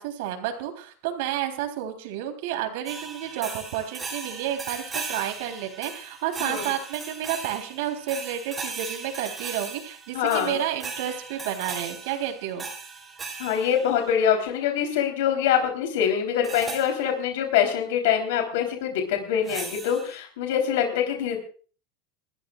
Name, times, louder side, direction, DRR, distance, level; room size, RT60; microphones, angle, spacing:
voice 1, 0.0-12.6, right 10 dB, 75° right, 5 dB, 3.5 m, -31 dB
sound 1, 2.8-14.3 16.4-16.9 19.4-20.2, right 4 dB, 15° right, 3.4 m, -37 dB
voice 2, 10.1-10.6 13.4-21.4, left 8 dB, 80° left, 3 dB, 3.7 m, -24 dB
29.0 x 13.5 x 2.4 m, 0.40 s
supercardioid pair, 160°, 0 cm